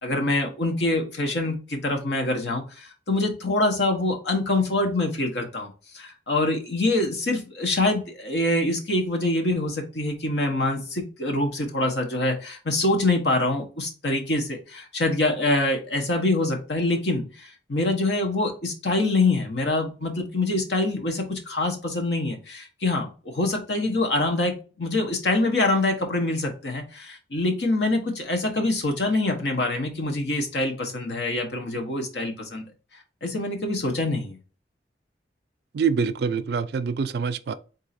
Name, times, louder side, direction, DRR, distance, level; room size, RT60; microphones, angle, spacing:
voice 1, 0.0-32.6 33.2-34.4, left 2 dB, 70° left, 1.1 m, -25 dB
voice 2, 35.8-37.5, right 6 dB, 65° right, 0.4 m, -25 dB
3.8 x 2.7 x 4.1 m
head